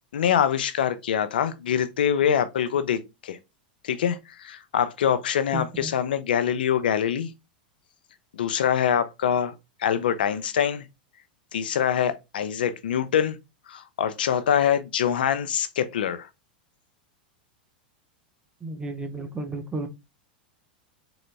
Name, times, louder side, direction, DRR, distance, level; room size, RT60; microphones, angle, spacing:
voice 1, 0.1-3.4 3.8-7.3 8.3-9.5 9.8-10.8 11.5-13.4 13.7-16.3, left 9 dB, 80° left, 0.6 m, -24 dB
voice 2, 5.5-5.9 18.6-19.9, right 2 dB, 20° right, 1.0 m, -33 dB
4.0 x 3.9 x 3.4 m
hypercardioid pair, 115°, 5 cm